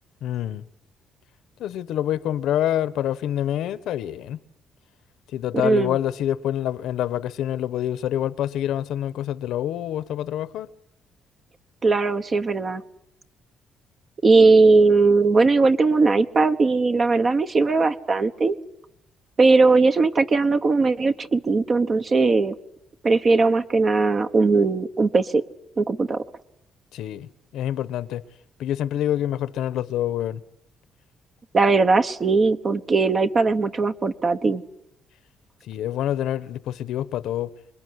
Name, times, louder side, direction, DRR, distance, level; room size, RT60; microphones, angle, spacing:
voice 1, 0.2-0.6 1.6-4.4 5.3-10.7 26.9-28.2 28.6-30.4 35.7-37.5, left 11 dB, 80° left, 1.2 m, -26 dB
voice 2, 5.6-6.0 11.8-12.8 14.2-18.5 19.4-22.6 23.0-25.4 25.8-26.2 31.5-34.6, right 3 dB, 30° right, 1.1 m, -19 dB
27.0 x 22.0 x 9.8 m
cardioid pair, 160°, 0 cm